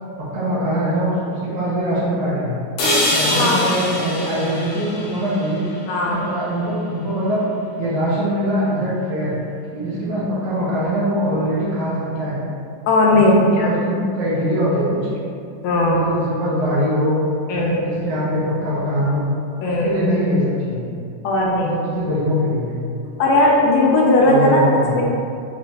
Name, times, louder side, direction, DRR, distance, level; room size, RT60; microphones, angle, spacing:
voice 1, 0.2-2.5 3.1-5.7 6.1-7.5 7.8-9.3 9.6-12.4 13.1-15.0 15.8-17.2 17.6-19.3 19.8-20.9 21.6-22.8 24.2-25.0, equal, 70° right, -9 dB, 2.0 m, -22 dB
sound 1, 2.8-6.8, left 1 dB, 70° left, 1.5 m, -24 dB
voice 2, 5.9-6.2 12.9-13.7 15.6-16.0 17.5-17.9 19.6-20.0 21.2-21.7 23.2-25.0, left 1 dB, 90° left, -3 dB, 2.4 m, -17 dB
6.1 x 2.6 x 3.2 m, 2.4 s
omnidirectional pair, 4.0 m